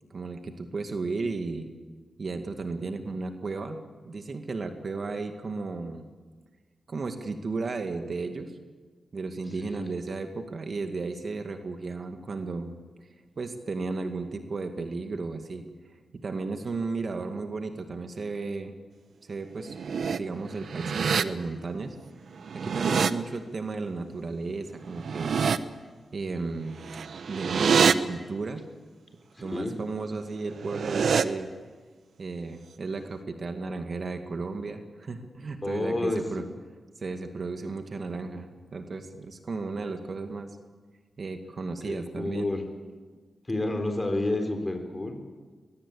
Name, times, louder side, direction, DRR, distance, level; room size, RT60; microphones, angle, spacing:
voice 1, 0.1-1.7 2.2-3.8 4.0-6.1 6.9-8.5 9.1-12.7 13.4-15.6 16.1-18.8 19.3-22.0 22.5-25.4 26.1-26.8 27.3-28.6 29.4-31.5 32.2-36.4 37.0-40.6 41.2-42.5, right 3 dB, 55° right, 5 dB, 2.2 m, -34 dB
sound 1, 19.6-20.2 20.6-21.2 22.4-23.1 24.9-25.6 26.8-27.9 30.5-31.2, right 6 dB, 70° right, 1.0 m, -25 dB
voice 2, 29.3-29.8 35.6-36.4 41.8-42.7 43.5-45.2, left 2 dB, 25° left, 4 dB, 3.9 m, -30 dB
22.5 x 20.5 x 8.7 m, 1.4 s
cardioid pair, 70°, 0 cm